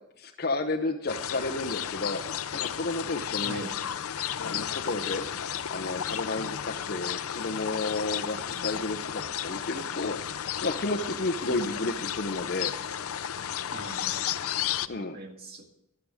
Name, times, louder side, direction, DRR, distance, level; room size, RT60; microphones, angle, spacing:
voice 1, 0.2-3.6 4.4-5.2 5.7-12.7 14.9-15.2, left 2 dB, 50° left, 2 dB, 0.8 m, -32 dB
sound 1, 1.1-14.9, left 9 dB, 85° left, 0.6 m, -33 dB
voice 2, 3.4-3.8 11.5-11.9 13.7-14.2 15.0-15.7, right 1 dB, 50° right, 3 dB, 2.0 m, -41 dB
15.0 x 11.5 x 3.6 m, 0.84 s
head